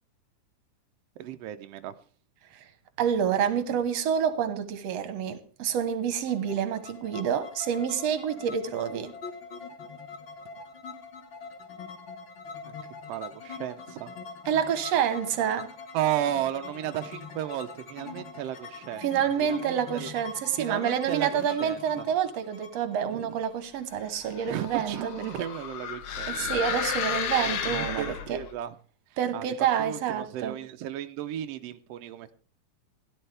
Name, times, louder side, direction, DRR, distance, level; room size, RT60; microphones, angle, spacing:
voice 1, 1.2-1.9 12.6-12.7 13.1-14.1 15.9-20.1 20.5-22.1 23.1-23.3 24.5-26.3 27.0-27.2 27.6-28.7 29.3-29.5 29.8-32.3, right 12 dB, 80° right, 1.4 m, -34 dB
voice 2, 3.0-9.1 14.5-15.7 19.0-25.1 26.3-28.4 29.2-30.6, right 8 dB, 60° right, 2.1 m, -28 dB
sound 1, 6.3-24.0, left 5 dB, 50° left, 1.6 m, -43 dB
sound 2, 24.1-28.5, left 8 dB, 65° left, 1.3 m, -33 dB
17.0 x 11.5 x 3.4 m
omnidirectional pair, 3.6 m